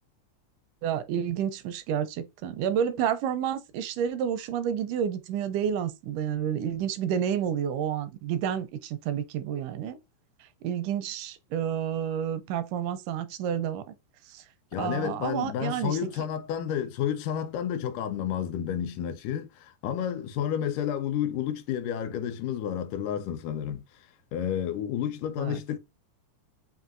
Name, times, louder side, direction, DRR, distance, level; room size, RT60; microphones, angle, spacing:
voice 1, 0.8-10.0 10.4-13.9 14.3-14.4 14.8-16.2 25.4-25.6, right 9 dB, 85° right, 2.1 m, -30 dB
voice 2, 14.7-23.8 24.3-25.8, left 9 dB, 90° left, 2.2 m, -30 dB
5.5 x 2.7 x 2.5 m
omnidirectional pair, 3.6 m